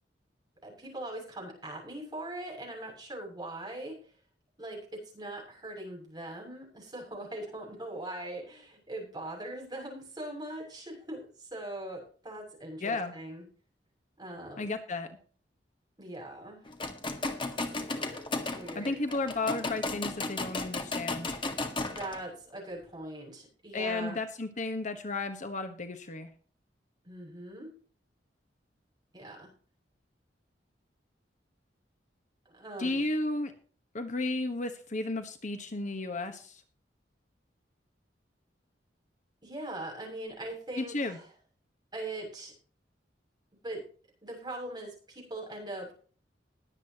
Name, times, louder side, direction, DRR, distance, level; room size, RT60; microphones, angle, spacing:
voice 1, 0.6-4.0 4.6-13.4 14.2-14.7 16.0-16.6 17.8-18.3 18.5-19.2 21.9-24.2 27.0-27.7 29.1-29.5 32.5-33.0 39.4-41.2 41.9-42.5 43.6-43.8 44.2-45.9, right 1 dB, 25° right, 0 dB, 6.9 m, -41 dB
voice 2, 12.8-13.1 14.6-15.1 18.7-21.4 23.7-26.3 32.8-33.5 33.9-36.6 40.8-41.2, left 2 dB, 45° left, 7 dB, 1.3 m, -33 dB
sound 1, 16.7-22.2, left 2 dB, 30° left, 1.7 m, -35 dB
21.0 x 8.5 x 2.9 m, 0.43 s
head